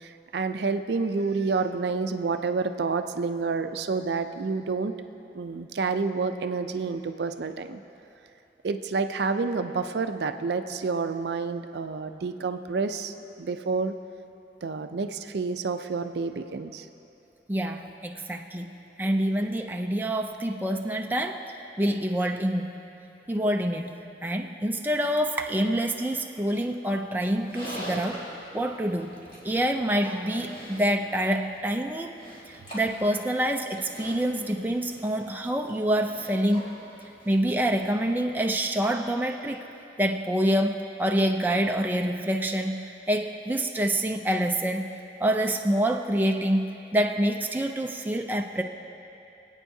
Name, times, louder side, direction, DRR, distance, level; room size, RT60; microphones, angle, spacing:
voice 1, 0.0-4.9 5.3-7.8 8.6-13.9 14.6-16.9, right 4 dB, 70° right, 8 dB, 0.5 m, -29 dB
voice 2, 17.5-18.7 19.0-21.4 21.8-22.7 23.3-23.9 24.2-28.2 28.5-29.2 29.4-32.2 32.5-36.8 37.3-39.6 40.0-44.9 45.2-48.6, right 1 dB, 10° right, 2 dB, 0.4 m, -26 dB
Livestock farm animals working animals, 27.2-38.5, equal, 30° left, 2.9 m, -45 dB
25.5 x 8.8 x 2.7 m, 2.8 s
head